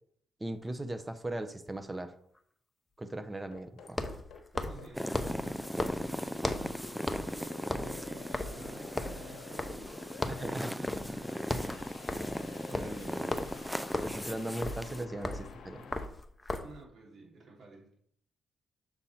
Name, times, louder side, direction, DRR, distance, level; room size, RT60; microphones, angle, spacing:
voice 1, 0.4-2.1 3.0-4.0 10.3-10.7 12.8-13.4 14.0-15.9, right 1 dB, 20° right, 9 dB, 0.8 m, -38 dB
sound 1, 0.6-0.7 3.9-6.8 7.1-7.4 7.6-10.0 10.2-10.5 10.9-11.1 11.4-16.8, left 2 dB, 15° left, 0.8 m, -37 dB
sound 2, 3.5-16.0, left 5 dB, 75° left, 1.0 m, -50 dB
voice 2, 4.5-9.7 10.4-11.2 11.5-11.8 12.7-13.5 16.5-18.0, right 3 dB, 65° right, -3 dB, 3.0 m, -52 dB
sound 3, 4.9-15.1, equal, ahead, 0.4 m, -38 dB
7.0 x 4.2 x 4.3 m, 0.66 s
supercardioid pair, 65°, 0 cm